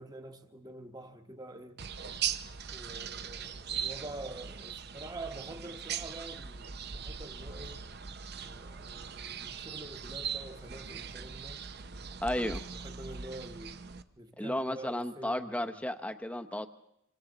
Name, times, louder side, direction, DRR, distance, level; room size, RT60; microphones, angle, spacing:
voice 1, 0.0-1.8 2.7-7.8 8.4-11.7 12.7-13.8 14.2-15.8, right 1 dB, 20° right, 1.1 m, -46 dB
sound 1, 1.8-14.0, right 7 dB, 50° right, 0.7 m, -40 dB
voice 2, 12.2-12.7 14.4-16.7, left 1 dB, 5° left, 0.7 m, -33 dB
26.0 x 25.0 x 3.9 m
head